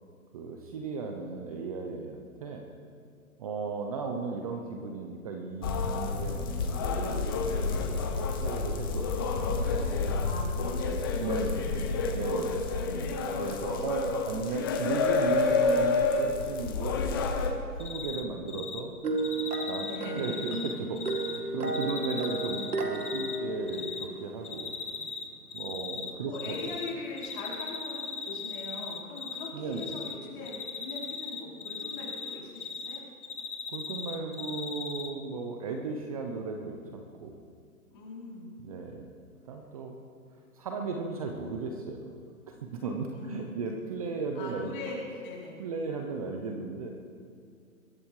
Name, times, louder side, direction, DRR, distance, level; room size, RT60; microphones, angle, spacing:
voice 1, 0.3-2.6 3.4-8.1 8.4-9.1 11.2-11.6 12.1-12.6 13.4-17.0 17.8-18.9 19.7-19.9 20.1-24.7 25.5-26.6 29.5-29.9 33.7-37.4 38.6-39.1 39.4-40.0 40.5-42.1 42.5-44.8 45.6-46.9, right 4 dB, 25° right, 3 dB, 0.9 m, -36 dB
sound 1, 5.6-17.5, left 4 dB, 15° left, 0.7 m, -29 dB
voice 2, 9.3-12.5 12.8-13.2 19.8-20.3 25.9-33.0 37.9-38.5 43.1-43.6 44.3-45.6, left 2 dB, 35° left, -4 dB, 4.7 m, -41 dB
Cricket, 17.8-18.2 18.5-18.8 19.2-21.4 21.7-23.4 23.7-24.0 24.4-25.2 25.5-26.9 27.2-29.5 29.7-30.1 30.5-33.0 33.2-35.1, left 5 dB, 80° left, 2.2 m, -37 dB
Tokyo - Music Box, 19.0-24.5, right 2 dB, 90° right, 2.2 m, -33 dB
22.0 x 11.0 x 4.9 m, 2.3 s
hypercardioid pair, 155°, 44 cm